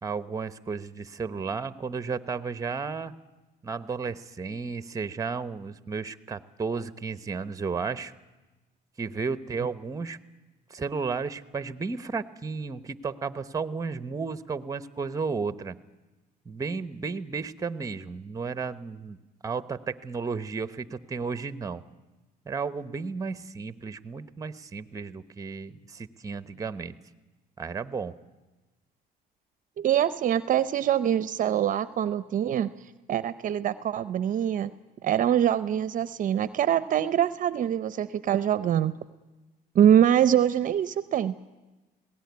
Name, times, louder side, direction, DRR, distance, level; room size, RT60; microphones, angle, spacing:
voice 1, 0.0-3.1 3.6-8.1 9.0-10.2 10.7-15.8 16.4-21.8 22.4-26.9 27.6-28.2, right 5 dB, 20° right, 13 dB, 0.9 m, -33 dB
voice 2, 29.8-32.7 33.1-34.7 35.0-39.0 39.7-41.3, right 10 dB, 50° right, 15 dB, 0.6 m, -24 dB
20.5 x 17.5 x 9.5 m, 1.1 s
cardioid pair, 110°, 17 cm